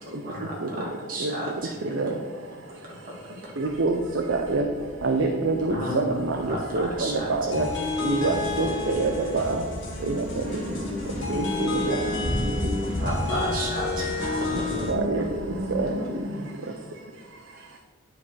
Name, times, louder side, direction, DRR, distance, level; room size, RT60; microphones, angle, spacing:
voice 1, 0.0-1.8 2.8-2.9 3.2-3.5 5.7-6.0 6.4-7.3 12.1-12.3 13.0-14.9 16.3-16.4 17.6-17.7, equal, 40° right, -4 dB, 2.2 m, -33 dB
sound 1, 3.6-15.9, equal, 35° left, 1.0 m, -38 dB
voice 2, 3.6-4.7 5.0-7.7 8.0-9.6 10.0-10.4 11.3-12.0 14.2-14.6 14.9-15.3 15.7-15.9, right 3 dB, 60° right, 3 dB, 0.6 m, -26 dB
sound 2, 7.5-14.9, left 3 dB, 55° left, 1.8 m, -31 dB
voice 3, 10.0-12.9 14.8-16.3, left 1 dB, 90° right, -1 dB, 1.7 m, -33 dB
9.9 x 4.9 x 4.2 m, 1.5 s
head